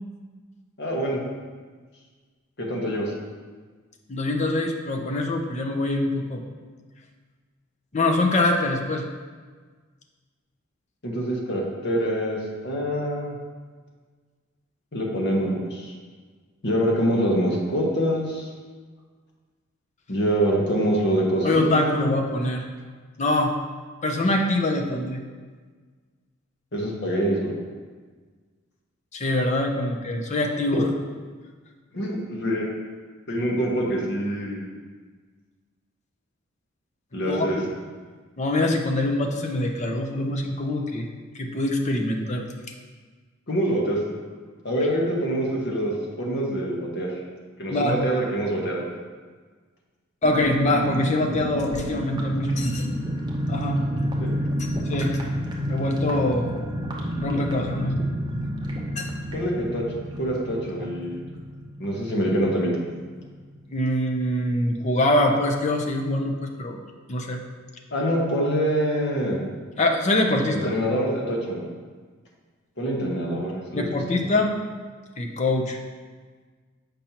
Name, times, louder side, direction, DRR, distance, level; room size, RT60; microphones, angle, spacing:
voice 1, 0.8-1.2 2.6-3.1 11.0-13.3 14.9-15.9 16.6-18.5 20.1-22.2 26.7-27.5 30.7-30.8 31.9-32.7 33.3-34.6 37.1-37.6 43.5-44.0 44.6-47.1 47.6-48.8 54.2-54.3 59.3-59.8 60.2-61.2 61.8-62.8 67.9-69.4 70.5-71.6 72.8-73.9, equal, 55° left, -2 dB, 1.1 m, -25 dB
voice 2, 4.1-6.4 7.9-9.0 21.4-22.7 23.2-23.5 24.0-25.2 29.1-30.9 37.2-37.5 38.4-41.1 41.3-42.5 47.7-48.0 50.2-52.9 53.5-53.8 54.9-55.2 55.7-56.5 57.2-58.0 59.0-59.1 63.7-66.8 67.1-67.4 69.8-70.7 73.7-74.6 75.2-75.8, left 1 dB, 35° left, 3 dB, 0.6 m, -24 dB
sound 1, 50.2-62.6 62.9-63.0 63.2-63.5, equal, 20° right, 0.7 m, -30 dB
7.0 x 5.3 x 2.9 m, 1.5 s
head